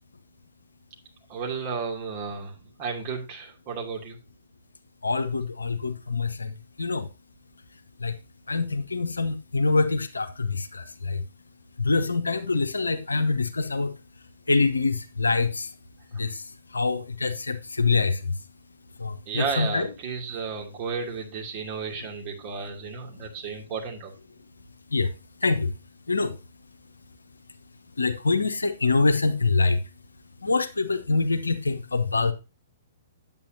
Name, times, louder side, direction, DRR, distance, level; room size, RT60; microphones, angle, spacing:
voice 1, 1.3-4.2 19.3-24.1, right 5 dB, 35° right, 2.7 m, -33 dB
voice 2, 5.0-7.1 8.0-8.1 8.5-11.2 11.8-13.9 14.5-15.7 16.1-18.3 19.0-19.9 24.9-25.1 25.4-25.7 26.1-26.3 28.0-29.8 30.4-32.3, left 3 dB, 75° left, 1.0 m, -25 dB
9.0 x 8.8 x 2.8 m
figure-of-eight pair, 115°, 0 cm